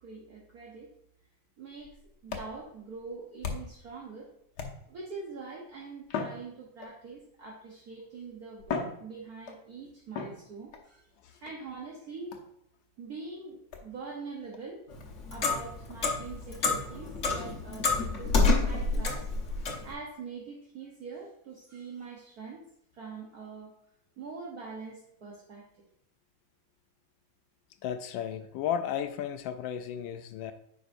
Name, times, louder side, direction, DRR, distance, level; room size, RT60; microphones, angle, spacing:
voice 1, 0.0-0.9 1.6-2.0 2.2-4.3 4.9-12.4 13.0-14.8 15.3-18.4 18.6-19.2 19.6-22.6 22.9-23.7 24.2-25.6, right 4 dB, 55° right, -3 dB, 1.5 m, -44 dB
sound 1, 1.7-3.9 4.5-5.1 6.0-7.1 8.0-8.1 8.6-9.7 10.1-10.9 12.3-12.6 13.7-13.9 14.5-14.6 15.0-15.1 15.4-15.6 15.9-16.0 16.4-16.5 16.9-17.0 17.4-17.5 18.4-18.6, left 5 dB, 65° left, 1.4 m, -39 dB
Clock, 14.9-19.9, left 3 dB, 45° left, 1.3 m, -28 dB
voice 2, 27.8-30.5, left 9 dB, 85° left, 9 dB, 1.3 m, -34 dB
9.3 x 5.3 x 2.6 m, 0.72 s
omnidirectional pair, 2.0 m